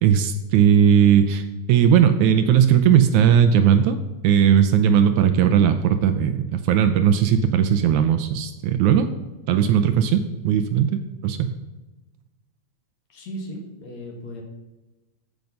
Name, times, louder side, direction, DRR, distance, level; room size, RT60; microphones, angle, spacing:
voice 1, 0.0-1.4 1.7-4.0 4.2-9.1 9.5-11.5, right 8 dB, 75° right, 9 dB, 2.0 m, -18 dB
voice 2, 13.1-14.4, equal, 60° left, 1 dB, 2.9 m, -36 dB
14.5 x 6.0 x 5.4 m, 1.1 s
omnidirectional pair, 3.7 m